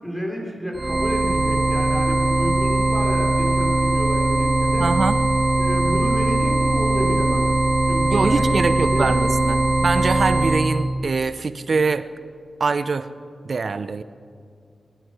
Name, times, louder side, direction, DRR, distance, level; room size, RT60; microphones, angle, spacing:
voice 1, 0.0-4.9 5.6-7.5 7.9-9.6, equal, 5° left, -1 dB, 4.3 m, -30 dB
sound 1, 0.7-10.7, right 2 dB, 30° right, 3.2 m, -20 dB
voice 2, 4.8-5.2 8.1-12.1 12.6-13.1 13.4-14.0, right 4 dB, 65° right, 12 dB, 0.7 m, -23 dB
23.0 x 9.8 x 6.2 m, 2.2 s
cardioid pair, 45°, 0 cm